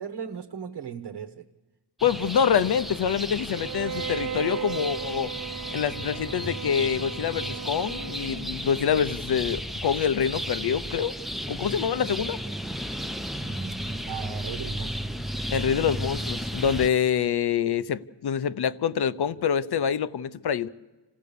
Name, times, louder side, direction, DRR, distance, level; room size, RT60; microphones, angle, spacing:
voice 1, 0.0-1.5 13.4-15.1, right 7 dB, 65° right, 1.2 m, -37 dB
voice 2, 2.0-5.3 5.7-11.2 11.5-12.4 15.5-20.7, left 8 dB, 60° left, 0.8 m, -26 dB
sound 1, 2.0-16.9, equal, ahead, 0.7 m, -34 dB
Bowed string instrument, 3.5-8.6, right 8 dB, 45° right, 0.7 m, -36 dB
26.5 x 16.0 x 6.9 m
cardioid pair, 70°, 44 cm